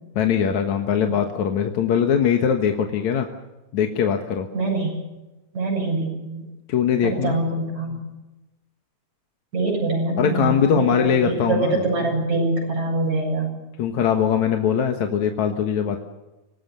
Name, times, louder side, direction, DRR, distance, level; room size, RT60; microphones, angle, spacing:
voice 1, 0.2-3.3 3.7-4.5 6.7-7.4 10.2-11.9 13.8-16.0, left 8 dB, 70° left, 4 dB, 2.7 m, -21 dB
voice 2, 4.5-5.0 5.5-6.5 7.0-8.1 9.5-13.5, right 2 dB, 65° right, -2 dB, 9.3 m, -24 dB
25.5 x 19.0 x 6.9 m, 1.1 s
omnidirectional pair, 3.5 m